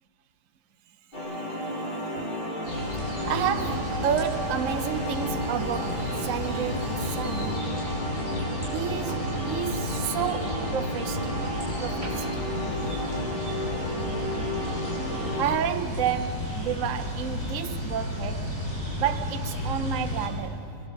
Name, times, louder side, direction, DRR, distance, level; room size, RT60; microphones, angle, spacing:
sound 1, 1.1-15.4, equal, 30° left, 4.6 m, -32 dB
sound 2, 2.6-20.3, left 1 dB, 45° left, 8.6 m, -33 dB
voice 1, 3.2-7.7 8.7-11.3 11.8-12.4 12.9-13.0 15.3-18.6 19.0-20.7, right 9 dB, 55° right, 1.1 m, -31 dB
27.0 x 23.5 x 8.0 m
omnidirectional pair, 1.9 m